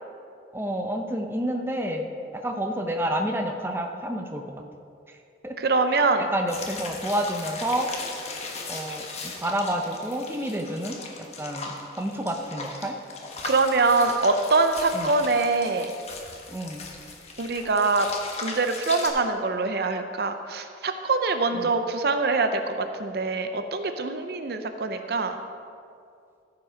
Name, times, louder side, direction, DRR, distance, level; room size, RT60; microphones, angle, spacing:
voice 1, 0.5-4.4 5.1-5.2 5.4-5.6 5.9-6.0 6.3-7.9 8.7-13.0 14.9-15.1 16.5-16.8 21.5-21.7, right 1 dB, 15° right, 3 dB, 0.7 m, -29 dB
voice 2, 5.6-6.2 13.4-15.9 17.4-18.1 18.4-25.4, right 3 dB, 55° right, 7 dB, 0.5 m, -24 dB
sound 1, 6.5-19.1, left 3 dB, 35° left, 1.2 m, -38 dB
14.0 x 5.9 x 5.0 m, 2.4 s
head